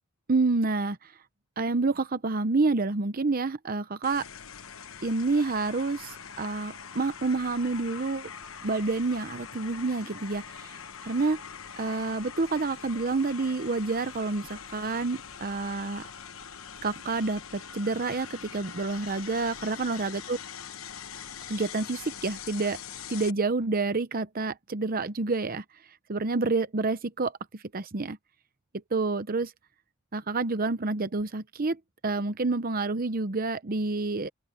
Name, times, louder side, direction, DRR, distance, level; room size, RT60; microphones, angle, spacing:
voice 1, 0.3-1.1 1.6-4.2 5.0-8.3 8.6-10.7 11.0-11.4 11.8-16.0 16.8-20.4 21.5-22.8 23.1-25.6 26.1-28.2 28.9-29.5 30.1-34.3, right 3 dB, 45° right, 0.8 m, -28 dB
sound 1, 4.0-23.3, left 7 dB, 75° left, 1.1 m, -43 dB
open air
head